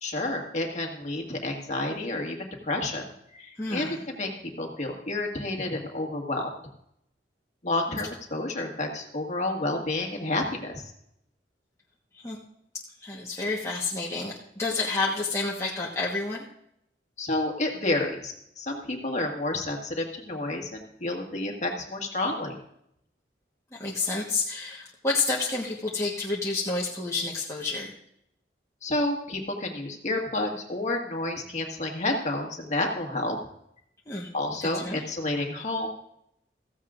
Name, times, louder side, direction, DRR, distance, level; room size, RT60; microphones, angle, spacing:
voice 1, 0.0-3.1 3.3-4.3 4.6-6.5 7.6-10.8 17.2-22.6 28.8-33.4 34.3-35.9, left 2 dB, 40° left, 2 dB, 1.8 m, -30 dB
voice 2, 3.6-4.1 12.2-12.4 13.0-16.4 23.7-27.9 34.1-34.3 34.6-35.0, left 3 dB, 15° left, -4 dB, 1.2 m, -29 dB
15.0 x 14.5 x 2.5 m, 0.76 s
head